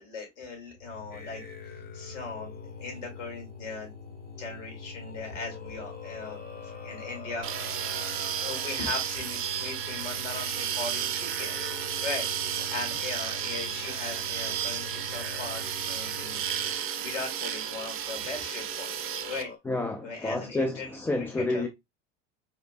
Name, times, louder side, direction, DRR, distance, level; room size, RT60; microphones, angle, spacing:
voice 1, 0.0-3.9 4.4-7.8 8.4-11.5 12.0-19.5 20.0-21.6, left 3 dB, 75° left, 2.8 m, -39 dB
sound 1, 0.7-16.8, left 4 dB, 45° left, 1.3 m, -45 dB
sound 2, 1.1-8.7 9.5-9.8 10.4-19.6, left 5 dB, 25° left, 1.2 m, -47 dB
sound 3, 7.4-19.4, right 10 dB, 35° right, 0.8 m, -33 dB
voice 2, 19.7-21.7, left 2 dB, 5° left, 0.3 m, -29 dB
4.9 x 4.0 x 2.4 m
hypercardioid pair, 80°, 37 cm